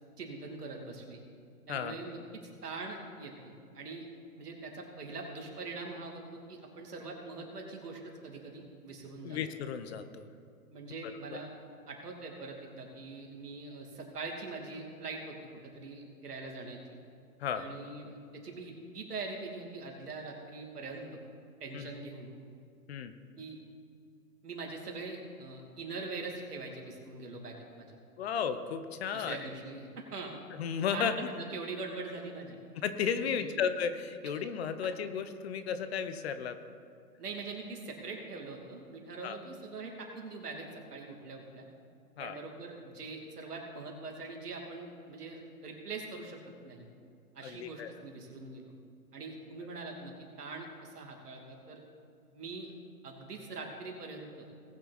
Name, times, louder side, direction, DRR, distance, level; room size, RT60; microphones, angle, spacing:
voice 1, 0.2-1.2 1.7-4.0 4.4-9.4 10.7-11.5 11.9-15.4 15.6-16.8 17.5-21.2 21.6-22.3 23.4-23.6 24.4-28.0 29.1-30.3 30.9-31.1 31.4-32.6 33.2-33.6 34.2-34.3 37.2-41.6 42.2-46.8 47.3-48.6 49.1-51.8 52.3-52.7 53.0-54.4, right 3 dB, 75° right, 0 dB, 2.8 m, -43 dB
voice 2, 9.2-10.3 11.0-11.1 17.4-17.7 21.7-21.9 22.9-23.1 28.2-29.4 30.6-31.3 32.8-36.6 39.2-39.4 42.2-42.4 47.4-47.9 49.7-49.8, left 7 dB, 45° left, 10 dB, 0.8 m, -34 dB
19.0 x 6.7 x 4.2 m, 2.4 s
hypercardioid pair, 130°, 46 cm